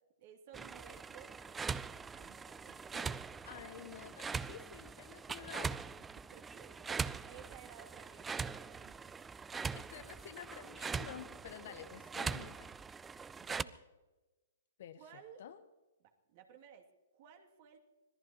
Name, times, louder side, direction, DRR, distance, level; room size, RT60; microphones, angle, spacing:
voice 1, 0.2-1.8 2.1-3.2 6.2-9.5 11.7-11.8 12.3-12.6 13.2-13.9 15.0-15.5 16.0-17.8, right 8 dB, 50° right, 3 dB, 2.5 m, -57 dB
sound 1, 0.5-13.6, right 5 dB, 15° right, 0.4 m, -42 dB
voice 2, 3.4-5.7 9.7-12.7 14.8-15.0 15.4-15.6, left 9 dB, 60° left, 10 dB, 1.2 m, -50 dB
25.5 x 18.0 x 3.0 m, 1.1 s
hypercardioid pair, 120°, 0 cm